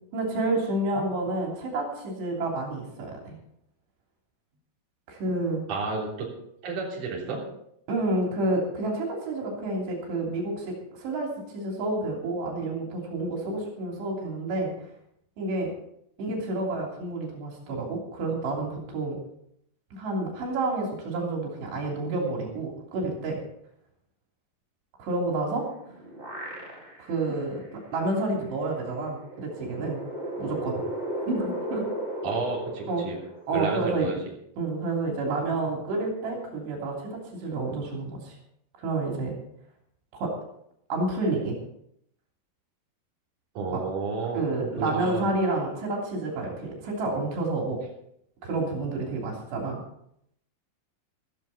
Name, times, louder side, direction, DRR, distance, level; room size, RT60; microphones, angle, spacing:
voice 1, 0.1-3.4 5.1-5.6 7.9-14.9 15.4-15.7 16.2-19.2 19.9-23.4 25.0-25.6 27.0-27.6 27.9-30.0 30.4-30.8 31.3-31.8 32.9-33.1 33.5-34.1 34.6-38.4 38.8-39.4 40.2-40.3 40.9-41.6 43.7-43.8 44.4-47.8 48.4-49.8, right 2 dB, 85° right, 0 dB, 5.3 m, -29 dB
voice 2, 5.7-6.3 6.6-7.4 32.2-33.2 33.5-34.2 43.5-44.4 44.8-45.3, right 4 dB, 50° right, -3 dB, 4.6 m, -31 dB
sound 1, 25.5-27.2 27.6-27.7 29.0-33.8, right 1 dB, 15° right, 4.3 m, -35 dB
15.0 x 14.5 x 4.2 m, 0.74 s
omnidirectional pair, 4.8 m